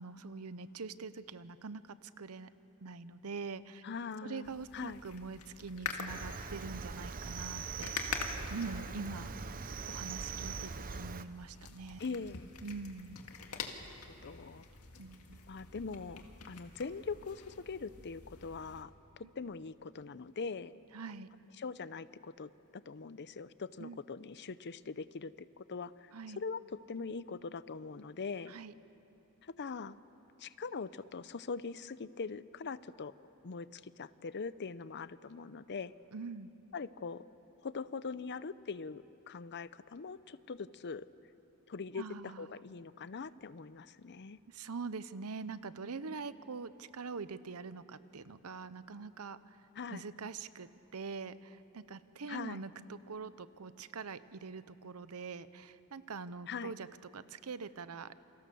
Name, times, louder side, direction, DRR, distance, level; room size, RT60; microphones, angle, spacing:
voice 1, 0.0-2.5 2.8-3.8 4.2-9.3 9.9-12.0 12.6-13.2 15.0-15.4 19.2-19.3 20.9-21.3 23.8-24.0 26.1-26.4 28.5-28.7 36.1-36.5 41.9-42.5 44.5-49.6 49.9-56.9 57.1-58.1, right 4 dB, 80° right, 14 dB, 0.8 m, -44 dB
voice 2, 3.8-5.0 12.0-12.5 13.6-13.7 14.2-14.6 15.5-18.9 19.2-20.7 21.6-22.5 22.9-28.5 29.4-30.0 30.4-33.1 33.4-35.9 36.7-37.2 37.6-41.1 41.7-44.4 49.8-50.0 52.3-52.6 56.5-56.7, left 5 dB, 50° left, 16 dB, 0.6 m, -42 dB
sound 1, 4.4-18.8, left 5 dB, 85° left, 2.0 m, -46 dB
Cricket, 6.1-11.2, right 5 dB, 40° right, 0.7 m, -42 dB
28.5 x 24.5 x 7.0 m, 2.9 s
head